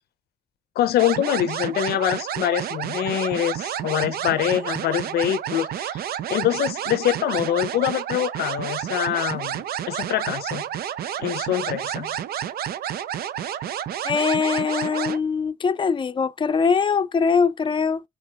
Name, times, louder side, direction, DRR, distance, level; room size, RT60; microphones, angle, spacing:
voice 1, 0.8-6.0 6.3-10.6 11.2-12.1, left 11 dB, 80° left, 0.5 m, -24 dB
sound 1, 1.0-15.2, right 10 dB, 75° right, 0.5 m, -30 dB
voice 2, 14.0-18.0, left 5 dB, 30° left, 0.5 m, -22 dB
4.3 x 4.1 x 2.4 m
supercardioid pair, 50°, 16 cm